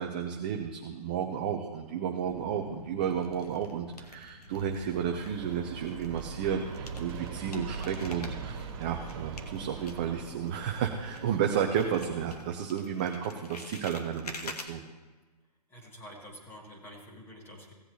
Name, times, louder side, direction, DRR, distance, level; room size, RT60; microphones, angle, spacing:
voice 1, 0.0-14.8, right 8 dB, 15° right, 3 dB, 0.4 m, -32 dB
sound 1, 1.8-2.4 3.0-4.9 5.1-11.5 11.8-14.7, left 3 dB, 70° left, 1.5 m, -47 dB
sound 2, 2.2-7.5 8.0-8.8, equal, 85° left, 2.4 m, -51 dB
Aircraft, 4.5-12.5, right 5 dB, 35° right, 2.0 m, -42 dB
voice 2, 15.7-17.7, equal, 10° left, 0 dB, 1.9 m, -48 dB
17.0 x 7.9 x 3.1 m, 1.3 s
hypercardioid pair, 150°, 21 cm